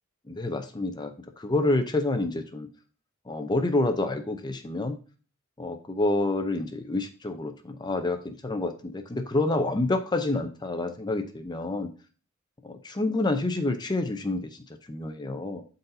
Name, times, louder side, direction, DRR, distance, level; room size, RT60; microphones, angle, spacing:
voice 1, 0.3-2.7 3.3-5.0 5.6-11.9 12.6-15.6, left 2 dB, 20° left, 6 dB, 0.6 m, -28 dB
12.0 x 4.1 x 2.7 m, 0.36 s
head